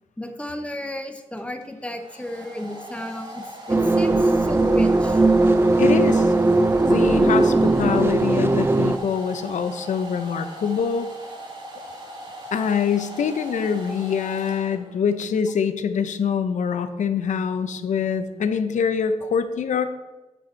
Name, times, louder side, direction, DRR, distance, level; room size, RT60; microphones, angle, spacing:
voice 1, 0.2-5.2, left 1 dB, 10° left, 5 dB, 0.8 m, -34 dB
Domestic sounds home sounds, 1.4-15.1, equal, 40° right, 2.0 m, -39 dB
sound 1, 3.7-9.0, right 2 dB, 20° right, 0.4 m, -18 dB
voice 2, 5.8-6.3 6.9-11.1 12.5-19.9, left 6 dB, 90° left, 10 dB, 0.7 m, -24 dB
8.9 x 6.3 x 4.4 m, 1.1 s
wide cardioid pair, 105°, 12 cm